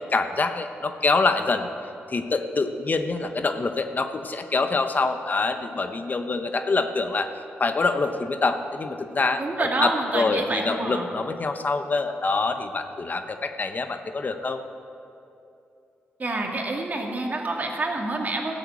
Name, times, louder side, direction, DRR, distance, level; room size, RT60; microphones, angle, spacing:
voice 1, 0.0-1.7 2.1-7.3 7.6-14.6, left 3 dB, 45° left, 7 dB, 0.9 m, -25 dB
voice 2, 9.4-11.1 16.2-18.5, right 2 dB, 40° right, 1 dB, 2.3 m, -27 dB
13.5 x 7.7 x 8.4 m, 2.7 s
cardioid pair, 60°, 4 cm